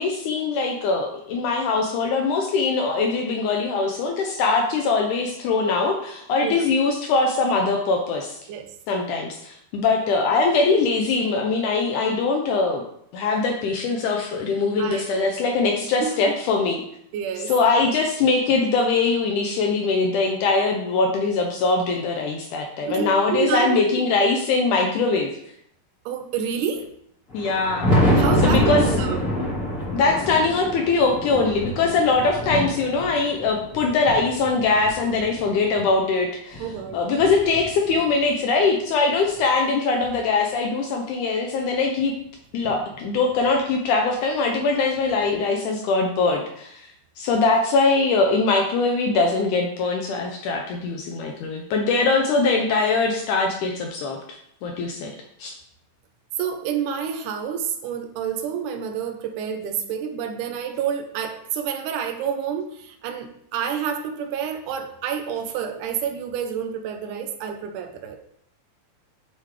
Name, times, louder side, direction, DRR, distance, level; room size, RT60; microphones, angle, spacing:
voice 1, 0.0-8.4 8.9-12.8 13.1-16.8 17.5-25.3 27.3-28.8 29.9-36.7 36.9-42.1 42.5-46.9 47.2-55.1 55.4-55.5, left 4 dB, 85° left, 2 dB, 1.8 m, -22 dB
voice 2, 14.8-15.4 16.0-16.2 17.1-17.5 22.9-24.0 26.1-26.8 28.1-29.2 36.6-37.0 42.6-42.8 56.4-68.2, right 7 dB, 75° right, 5 dB, 1.9 m, -28 dB
Thunder, 27.3-35.9 36.5-38.2 39.4-39.5 40.0-40.1 42.0-42.1 43.4-43.5 45.1-45.2, equal, 30° left, 1.5 m, -26 dB
9.3 x 3.4 x 3.2 m, 0.70 s
omnidirectional pair, 4.3 m